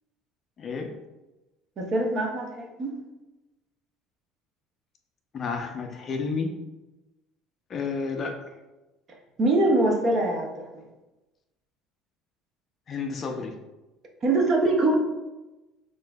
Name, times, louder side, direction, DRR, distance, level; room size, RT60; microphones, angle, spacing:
voice 1, 0.6-0.9 5.3-6.5 7.7-8.4 12.9-13.5, left 4 dB, 30° left, 4 dB, 0.4 m, -31 dB
voice 2, 1.8-2.9 9.4-10.7 14.2-15.0, right 2 dB, 30° right, 2 dB, 0.6 m, -23 dB
5.9 x 2.5 x 2.2 m, 1.1 s
cardioid pair, 170°, 0 cm